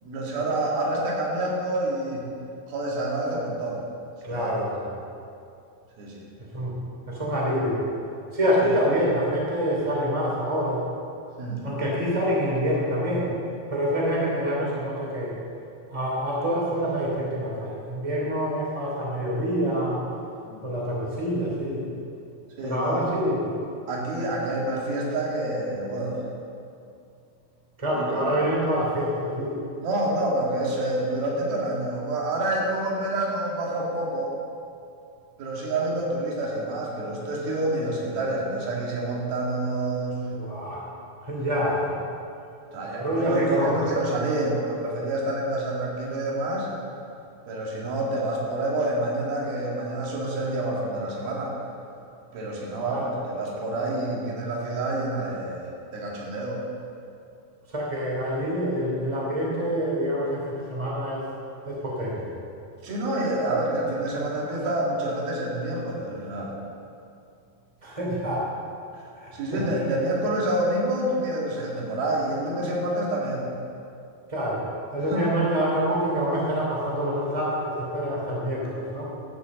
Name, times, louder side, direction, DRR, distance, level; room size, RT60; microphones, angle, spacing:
voice 1, 0.0-2.3 2.7-3.8 4.3-4.7 6.0-6.3 8.6-8.8 11.4-11.6 20.5-20.6 22.6-23.0 23.9-26.2 27.9-28.2 29.8-34.3 35.4-40.2 41.5-41.6 42.7-46.7 47.5-51.5 52.3-56.6 62.8-66.5 69.3-73.5 75.1-75.3, right 1 dB, 90° right, -3 dB, 4.0 m, -28 dB
voice 2, 4.2-4.9 6.5-6.7 7.1-7.9 8.3-10.8 11.6-13.3 13.7-15.3 15.9-20.0 20.6-21.9 22.6-23.5 27.8-29.6 40.3-40.9 41.2-41.9 43.0-43.7 52.9-53.0 57.7-61.2 61.6-62.3 67.8-68.5 69.1-69.7 74.3-74.7 74.9-79.1, equal, 10° right, -4 dB, 2.6 m, -26 dB
13.0 x 7.0 x 7.7 m, 2.5 s
omnidirectional pair, 4.2 m